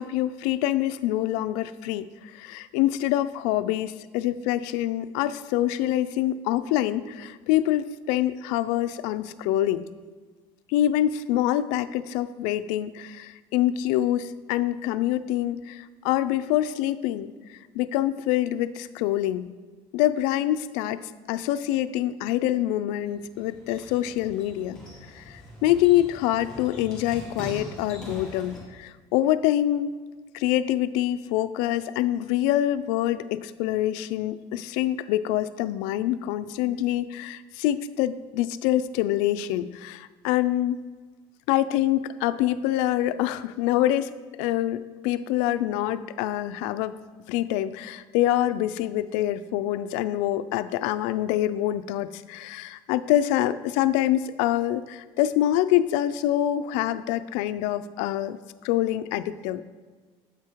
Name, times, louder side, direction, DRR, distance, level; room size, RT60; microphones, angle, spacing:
voice 1, 0.0-2.1 2.3-9.9 10.7-17.3 17.7-19.5 19.9-21.0 21.3-24.8 25.1-29.9 30.3-40.8 41.5-44.1 44.4-46.9 47.3-58.4 58.6-59.6, left 13 dB, 75° left, 13 dB, 0.4 m, -25 dB
sound 1, 23.0-28.6, left 1 dB, 5° left, 2.0 m, -42 dB
8.0 x 4.8 x 4.5 m, 1.4 s
cardioid pair, 180°, 12 cm